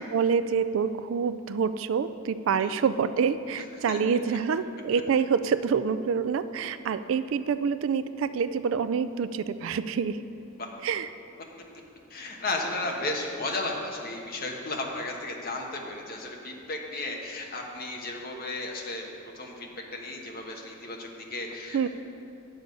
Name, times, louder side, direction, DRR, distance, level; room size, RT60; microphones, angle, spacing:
voice 1, 0.1-10.2 10.8-11.1 21.7-21.9, right 6 dB, 65° right, 13 dB, 0.3 m, -27 dB
voice 2, 12.1-19.0 19.3-21.9, left 2 dB, 45° left, 1 dB, 1.1 m, -34 dB
9.7 x 7.1 x 5.2 m, 2.6 s
head